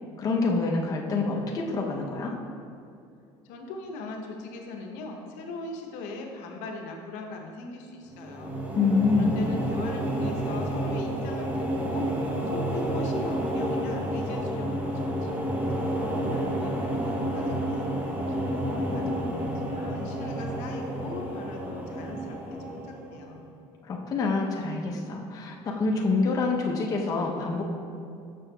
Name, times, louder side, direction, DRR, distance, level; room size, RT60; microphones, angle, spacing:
voice 1, 0.2-2.3 8.7-9.4 23.8-27.7, left 4 dB, 30° left, -1 dB, 0.6 m, -26 dB
voice 2, 3.4-8.5 9.1-17.9 18.3-23.4, left 3 dB, 80° left, 2 dB, 0.7 m, -40 dB
sound 1, 8.1-23.4, right 1 dB, 10° right, 0.6 m, -30 dB
7.5 x 5.9 x 2.2 m, 2.5 s
cardioid pair, 145°, 12 cm